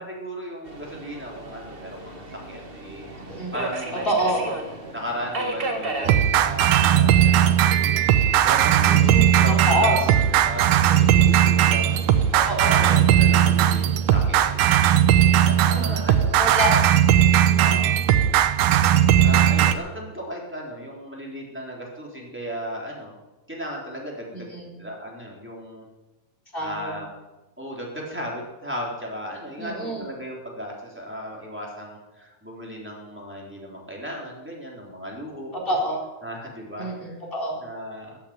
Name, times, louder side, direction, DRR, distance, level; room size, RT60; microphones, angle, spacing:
voice 1, 0.0-3.1 3.5-12.1 12.7-14.8 15.4-16.4 17.6-17.9 19.1-23.1 23.5-25.9 26.6-27.1 27.6-35.6 36.2-37.2 37.6-38.2, equal, 5° right, -3 dB, 3.8 m, -36 dB
Subway metro underground, 0.6-13.7, right 2 dB, 35° right, 0.9 m, -37 dB
voice 2, 3.2-3.6 4.0-4.4 8.8-10.0 12.3-12.9 15.9-16.0 16.4-16.8 17.5-17.9 24.3-24.7 26.5-26.9 29.6-30.1 35.5-36.0 36.8-37.6, right 1 dB, 15° left, -2 dB, 4.1 m, -26 dB
sound 1, 6.1-19.7, right 10 dB, 85° right, 2.4 m, -18 dB
15.0 x 8.6 x 9.9 m, 1.1 s
omnidirectional pair, 3.5 m